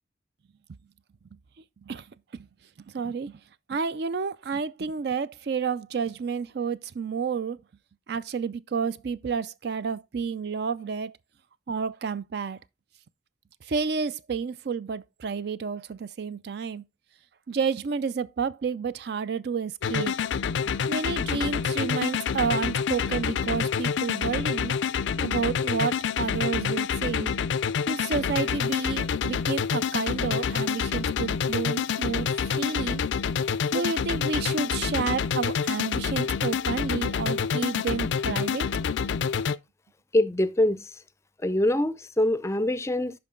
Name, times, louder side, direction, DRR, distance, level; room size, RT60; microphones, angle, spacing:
voice 1, 2.9-3.4 3.7-7.6 8.1-11.1 11.7-12.6 13.6-16.8 17.5-20.2 20.6-24.8 25.2-27.3 27.9-33.0 33.7-38.7, right 5 dB, 60° right, 0.4 m, -30 dB
sound 1, 19.8-39.6, left 6 dB, 85° left, 0.4 m, -27 dB
voice 2, 40.1-40.9 41.4-43.2, left 1 dB, 15° left, 0.4 m, -24 dB
11.0 x 4.5 x 3.7 m
head